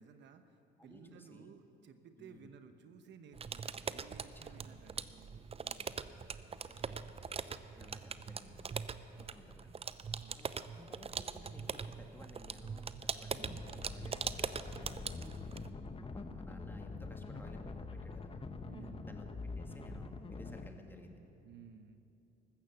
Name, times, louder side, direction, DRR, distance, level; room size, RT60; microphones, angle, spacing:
voice 1, 0.0-5.5 6.4-7.1 7.5-8.0 9.1-9.5 10.1-10.6 18.6-19.2 21.4-22.0, right 6 dB, 65° right, 9 dB, 1.0 m, -57 dB
voice 2, 0.8-1.5 2.2-2.5 4.5-4.8 5.6-6.0 6.7-7.2 7.8-8.7 9.2-9.8 10.3-15.6 16.0-18.6 19.0-19.3 19.6-21.2, left 1 dB, 10° left, 3 dB, 2.0 m, -56 dB
sound 1, 3.3-15.7, right 6 dB, 30° right, 0.6 m, -42 dB
sound 2, 13.3-20.7, left 3 dB, 30° left, 0.9 m, -45 dB
15.0 x 13.0 x 7.0 m, 2.9 s
supercardioid pair, 80°, 20 cm